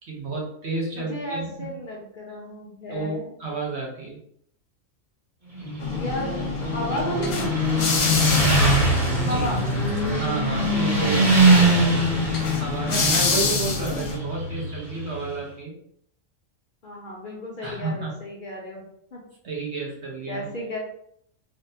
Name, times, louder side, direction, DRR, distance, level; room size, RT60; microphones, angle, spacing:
voice 1, 0.0-1.8 2.9-4.2 9.2-9.8 10.2-12.0 12.6-15.8 17.6-18.2 19.4-20.5, right 3 dB, 60° right, -2 dB, 1.0 m, -31 dB
voice 2, 0.9-3.3 5.9-7.6 9.3-9.6 16.8-18.9 19.1-19.2 20.3-20.8, left 1 dB, 50° left, -4 dB, 0.7 m, -33 dB
Motorcycle, 5.5-15.3, right 1 dB, 30° right, 1.2 m, -22 dB
sound 1, 5.8-14.2, left 3 dB, 75° left, 1.0 m, -28 dB
3.4 x 2.2 x 2.6 m, 0.68 s
omnidirectional pair, 1.3 m